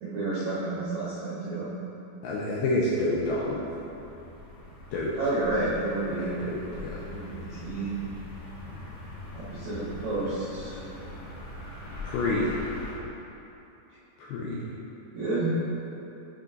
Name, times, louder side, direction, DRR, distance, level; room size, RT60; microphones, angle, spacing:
voice 1, 0.0-1.7 5.2-6.3 7.1-7.9 9.3-10.9 15.1-15.5, right 2 dB, 75° right, -9 dB, 1.6 m, -30 dB
voice 2, 2.2-3.7 4.9-5.2 6.1-7.0 12.0-12.6 14.2-14.6, left 2 dB, 80° left, -6 dB, 2.3 m, -29 dB
sound 1, 2.8-12.9, left 2 dB, 50° left, 2.5 m, -42 dB
10.5 x 4.2 x 3.9 m, 2.9 s
omnidirectional pair, 5.2 m